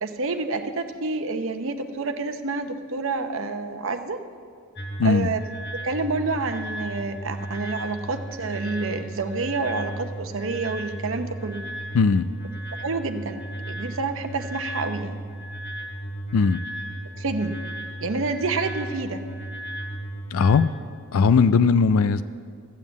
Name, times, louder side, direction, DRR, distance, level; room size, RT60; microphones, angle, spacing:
voice 1, 0.0-4.2 5.0-5.4 5.8-11.6 12.8-13.4 13.7-15.2 17.2-17.6 18.0-19.2, right 3 dB, 60° right, 7 dB, 0.8 m, -28 dB
sound 1, 4.8-20.6, right 1 dB, 50° left, 2.1 m, -35 dB
voice 2, 11.9-12.3 16.3-16.6 20.3-20.7 21.1-22.2, left 5 dB, 70° left, 13 dB, 0.4 m, -18 dB
14.5 x 7.3 x 8.0 m, 2.1 s
head